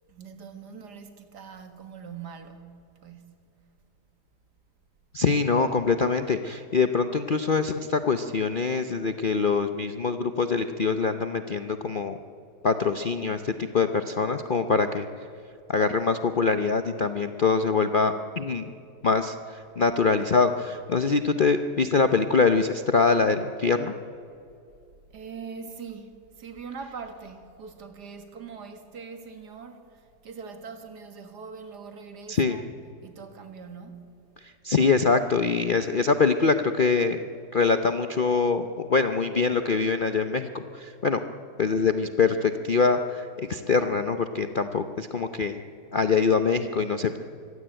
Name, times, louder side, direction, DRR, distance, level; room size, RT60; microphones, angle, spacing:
voice 1, 0.1-3.4 25.1-32.7 33.0-34.2, right 5 dB, 70° right, 2.3 m, -42 dB
voice 2, 5.1-12.2 12.6-15.1 15.7-18.6 19.0-23.9 32.3-32.6 34.4-37.2 37.5-41.2 41.6-45.6 45.9-47.2, left 4 dB, 50° left, 0.6 m, -24 dB
24.0 x 16.0 x 8.9 m
omnidirectional pair, 1.8 m